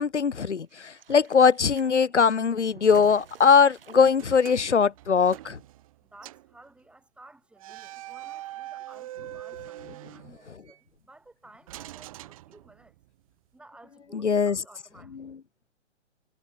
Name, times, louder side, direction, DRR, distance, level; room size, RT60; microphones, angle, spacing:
voice 1, 0.0-5.6 14.1-14.6, left 6 dB, 80° left, 0.7 m, -21 dB
sound 1, 0.7-5.5 5.8-5.9, right 8 dB, 50° right, 5.3 m, -49 dB
sound 2, 4.1-6.0 6.2-6.5 7.6-10.8 11.7-13.1, right 15 dB, 30° right, 1.1 m, -43 dB
voice 2, 6.0-13.0 13.5-15.4, right 2 dB, 5° right, 5.5 m, -55 dB
figure-of-eight pair, 125°, 35 cm